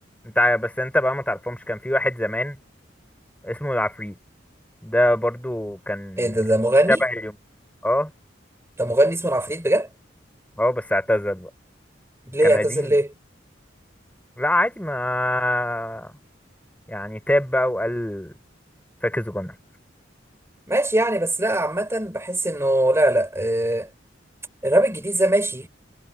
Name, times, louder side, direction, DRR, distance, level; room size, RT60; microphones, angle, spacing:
voice 1, 0.2-2.6 3.4-4.1 4.8-6.4 6.9-7.3 7.8-8.1 10.6-11.5 12.4-12.9 14.4-16.1 16.9-18.3 19.0-19.6, left 1 dB, 10° left, 4.2 m, -24 dB
voice 2, 6.2-7.0 8.8-9.9 12.3-13.1 20.7-23.9 24.6-25.7, right 1 dB, 15° right, 3.7 m, -21 dB
head